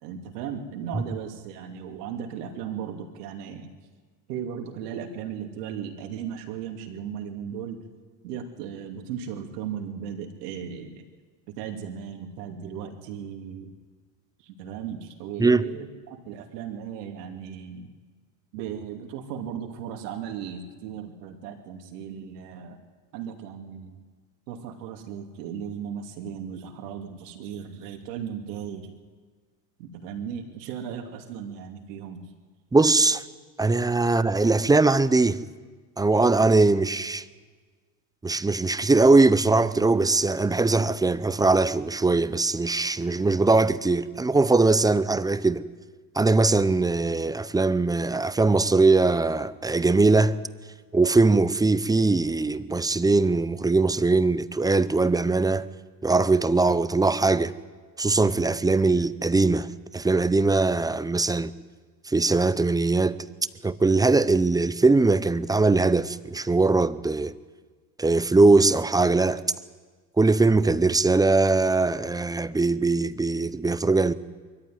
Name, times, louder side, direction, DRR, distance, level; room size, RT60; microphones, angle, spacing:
voice 1, 0.0-3.7 4.3-7.8 8.2-11.1 11.6-13.7 14.4-17.9 18.5-22.8 23.1-24.0 24.5-28.9 29.8-32.2, right 8 dB, 80° right, 2.9 m, -36 dB
voice 2, 32.7-33.2 33.6-35.4 36.0-37.2 38.2-45.6 46.2-50.4 50.9-55.7 56.0-57.5 58.0-59.7 59.9-61.5 62.1-63.2 63.6-67.3 68.0-69.4 70.2-74.1, right 3 dB, 10° right, 0.5 m, -21 dB
22.0 x 14.5 x 9.4 m
supercardioid pair, 95°, 47 cm